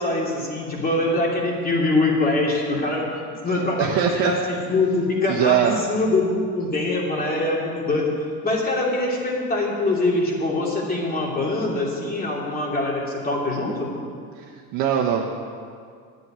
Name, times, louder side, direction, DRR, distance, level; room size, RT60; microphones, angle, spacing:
voice 1, 0.0-3.1 3.4-6.2 6.5-8.1 8.4-13.9, left 2 dB, 25° left, -2 dB, 2.9 m, -23 dB
voice 2, 3.8-4.3 5.3-5.7 14.4-14.5 14.7-15.3, right 9 dB, 70° right, -1 dB, 1.2 m, -21 dB
9.8 x 8.0 x 9.0 m, 2.2 s
cardioid pair, 130°, 37 cm